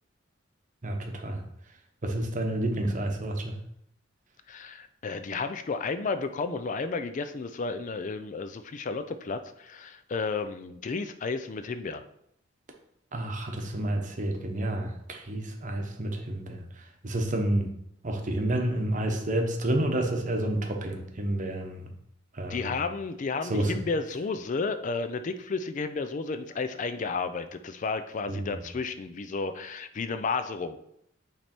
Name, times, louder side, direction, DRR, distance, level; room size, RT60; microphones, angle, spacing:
voice 1, 0.8-1.4 2.0-3.6 13.1-16.6 17.0-17.7 18.0-21.8 22.3-22.8 23.5-23.7 28.3-28.5, right 1 dB, 40° right, 4 dB, 0.9 m, -29 dB
voice 2, 4.5-12.0 22.5-30.8, left 4 dB, 40° left, 10 dB, 0.4 m, -32 dB
8.9 x 3.3 x 4.3 m, 0.74 s
head